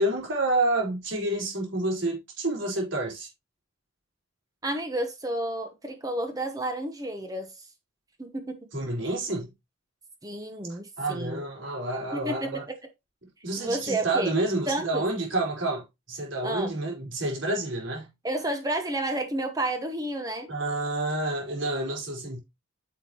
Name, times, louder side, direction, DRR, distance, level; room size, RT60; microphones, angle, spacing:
voice 1, 0.0-3.3 8.7-9.5 10.7-12.6 13.4-18.1 20.5-22.4, right 2 dB, 70° right, 4.5 m, -29 dB
voice 2, 4.6-7.7 8.2-8.7 10.2-11.4 12.1-12.8 13.6-14.4 14.7-15.0 16.4-16.7 18.2-20.5, right 1 dB, 20° right, 1.0 m, -31 dB
9.8 x 6.4 x 3.0 m
head